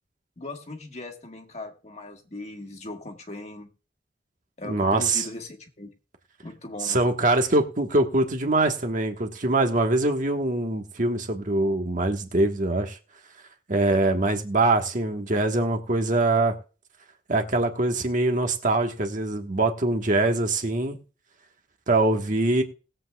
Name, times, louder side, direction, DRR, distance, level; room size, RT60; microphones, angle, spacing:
voice 1, 0.4-3.7 4.6-5.9 6.4-7.0, left 2 dB, 40° left, 1.4 m, -39 dB
voice 2, 4.6-5.2 6.8-13.0 13.7-16.5 17.3-21.0 21.9-22.6, right 2 dB, 45° right, 1.3 m, -23 dB
20.0 x 7.9 x 2.3 m
head